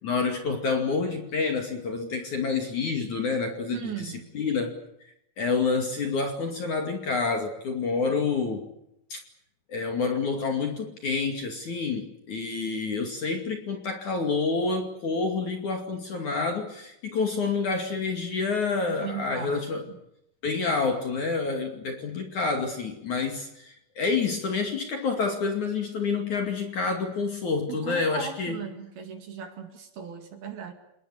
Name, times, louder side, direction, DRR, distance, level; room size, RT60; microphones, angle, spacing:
voice 1, 0.0-4.8 5.4-8.6 9.1-9.2 9.7-19.8 20.4-28.6, left 4 dB, 45° left, 5 dB, 3.2 m, -28 dB
voice 2, 3.7-4.3 19.0-19.9 27.7-30.7, right 8 dB, 55° right, 6 dB, 3.8 m, -37 dB
29.0 x 19.5 x 8.5 m, 0.80 s
omnidirectional pair, 5.9 m